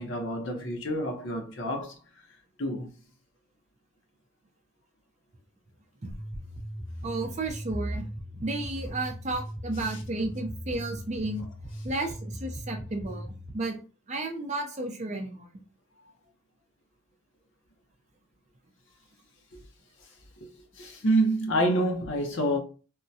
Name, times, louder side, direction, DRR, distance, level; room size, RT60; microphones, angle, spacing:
voice 1, 0.0-1.9 2.6-2.9 20.8-22.6, right 1 dB, 60° left, 0.8 m, -27 dB
sound 1, 6.1-13.5, equal, 15° right, 0.9 m, -38 dB
voice 2, 7.0-8.1 8.4-11.4 11.8-13.3 13.5-13.8 14.1-15.5, right 2 dB, 30° right, 0.5 m, -32 dB
3.6 x 2.1 x 2.7 m
head